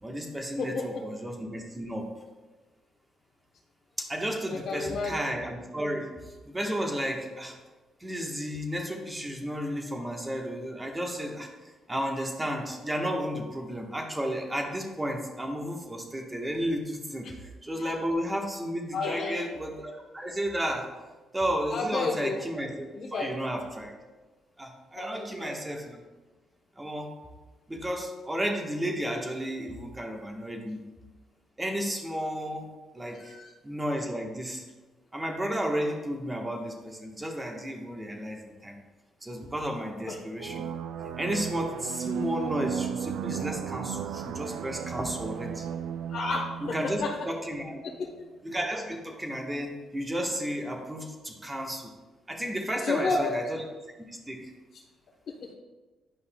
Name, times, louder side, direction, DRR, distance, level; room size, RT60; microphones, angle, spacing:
voice 1, 0.0-2.1 4.0-7.6 8.0-11.5 11.9-20.9 21.3-23.9 24.6-26.0 26.8-27.1 27.7-30.8 31.6-33.4 33.6-34.6 35.1-38.7 39.2-40.7 41.2-45.7 46.7-47.8 48.4-51.9 52.3-53.6 54.1-54.5, equal, 15° right, 2 dB, 1.1 m, -33 dB
voice 2, 0.6-1.0 4.5-5.1 17.8-17.9 18.9-19.4 21.7-22.4 22.9-23.3 25.0-25.6 33.2-33.5 40.1-40.2 46.1-47.3 52.8-53.4 55.3-55.5, left 3 dB, 60° left, -2 dB, 0.8 m, -31 dB
sound 1, 40.4-47.8, right 8 dB, 85° right, 0.3 m, -35 dB
10.0 x 5.3 x 2.2 m, 1.2 s
cardioid pair, 90°, 0 cm